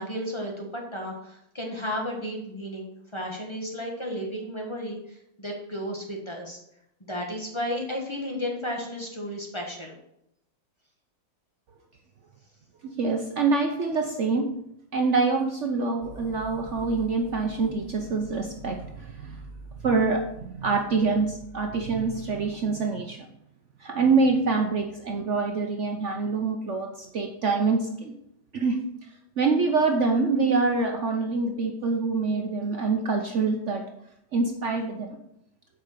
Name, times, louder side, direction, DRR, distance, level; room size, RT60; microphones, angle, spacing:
voice 1, 0.0-6.6 7.0-9.9, equal, 15° left, 0 dB, 1.3 m, -33 dB
voice 2, 13.0-14.5 14.9-19.4 19.8-23.2 23.8-28.1 28.5-28.8 29.4-33.8 34.3-35.2, right 4 dB, 85° right, 3 dB, 0.6 m, -25 dB
sound 1, 16.0-22.8, equal, 75° left, 2.0 m, -46 dB
8.1 x 5.1 x 6.6 m, 0.78 s
omnidirectional pair, 2.3 m